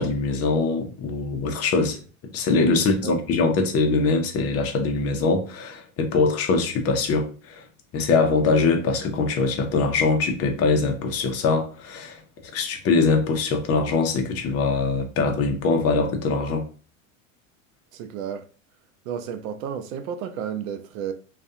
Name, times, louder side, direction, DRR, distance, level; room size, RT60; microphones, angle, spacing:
voice 1, 0.0-2.0 2.2-7.6 7.9-12.2 12.5-16.7, left 4 dB, 35° left, 0.7 m, -22 dB
voice 2, 2.8-3.1 17.9-18.5 19.1-21.1, right 8 dB, 70° right, 0.6 m, -32 dB
2.5 x 2.3 x 2.7 m
hypercardioid pair, 95°, 42 cm